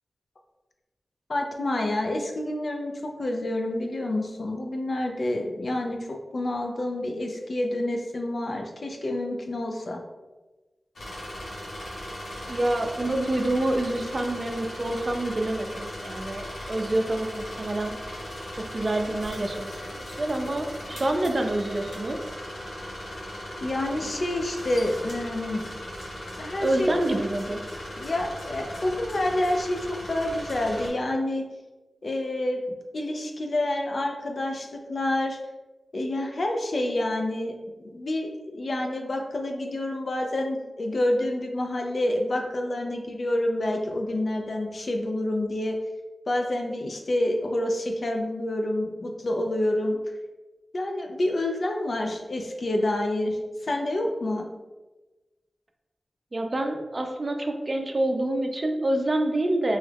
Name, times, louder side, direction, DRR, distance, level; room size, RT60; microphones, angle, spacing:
voice 1, 1.3-10.0 23.6-25.7 26.4-27.0 27.9-31.5 32.0-32.6 32.9-35.4 35.9-45.8 46.3-50.0 50.7-54.5, left 1 dB, 65° left, 2 dB, 0.5 m, -28 dB
sound 1, 11.0-30.9, equal, 85° left, 0.9 m, -38 dB
voice 2, 12.5-17.9 18.6-22.2 26.6-27.6 56.3-59.8, right 1 dB, 45° right, 4 dB, 0.4 m, -27 dB
3.0 x 2.3 x 3.3 m, 1.2 s
cardioid pair, 45°, 0 cm